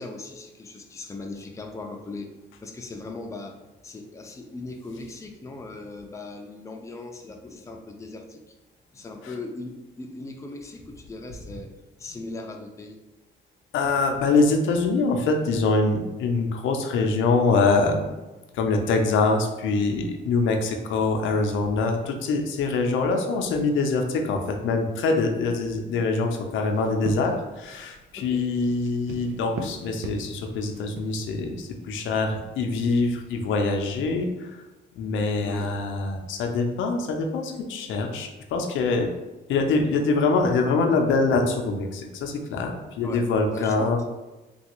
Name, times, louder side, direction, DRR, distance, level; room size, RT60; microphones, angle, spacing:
voice 1, 0.0-2.3 2.6-3.6 3.8-8.5 8.9-13.0 13.8-13.9 28.2-28.5 35.4-35.7 43.0-44.0, left 2 dB, 15° left, 2 dB, 0.4 m, -39 dB
voice 2, 13.7-18.2 18.5-34.5 35.0-39.1 39.5-44.0, left 3 dB, 80° left, 4 dB, 0.5 m, -24 dB
sound 1, 26.7-34.3, right 3 dB, 80° right, 0.5 m, -42 dB
3.3 x 2.3 x 2.9 m, 1.1 s
cardioid pair, 90°, 20 cm